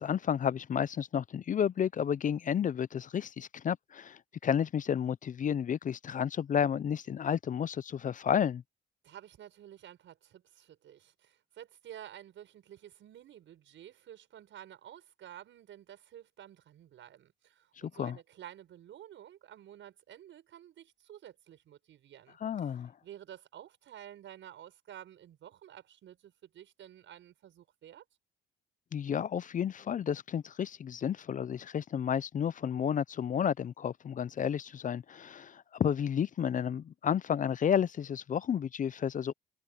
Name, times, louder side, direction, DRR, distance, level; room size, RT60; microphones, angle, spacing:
voice 1, 0.0-8.6 17.8-18.2 22.4-22.9 28.9-39.3, left 8 dB, 40° left, 0.5 m, -31 dB
voice 2, 9.0-22.4 23.0-28.0, right 11 dB, 75° right, 6.7 m, -51 dB
cardioid pair, 90°, 20 cm